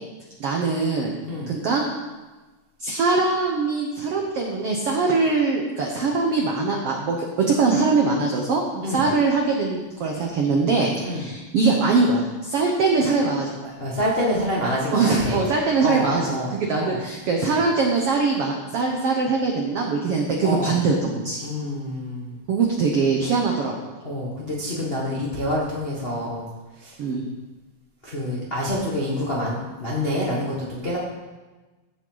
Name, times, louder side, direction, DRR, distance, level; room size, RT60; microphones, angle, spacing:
voice 1, 0.4-1.2 1.5-1.8 2.8-13.7 14.9-21.4 22.5-23.9 27.0-27.2, right 4 dB, 80° right, 1 dB, 1.3 m, -22 dB
voice 2, 13.8-15.4 15.8-17.0 20.4-20.8 21.4-22.4 24.0-26.5 26.8-27.0 28.0-31.0, left 1 dB, 85° left, -5 dB, 0.5 m, -27 dB
14.5 x 7.5 x 3.9 m, 1.2 s
omnidirectional pair, 4.2 m